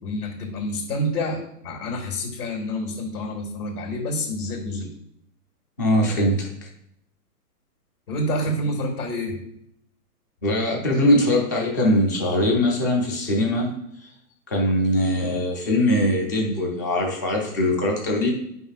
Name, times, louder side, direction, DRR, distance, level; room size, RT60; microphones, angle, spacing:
voice 1, 0.0-4.9 8.1-9.4, left 1 dB, 75° left, 1 dB, 1.8 m, -28 dB
voice 2, 5.8-6.7 10.4-14.1 14.5-18.3, left 1 dB, 15° left, 0 dB, 0.4 m, -22 dB
8.6 x 5.3 x 2.4 m, 0.76 s
hypercardioid pair, 145°, 47 cm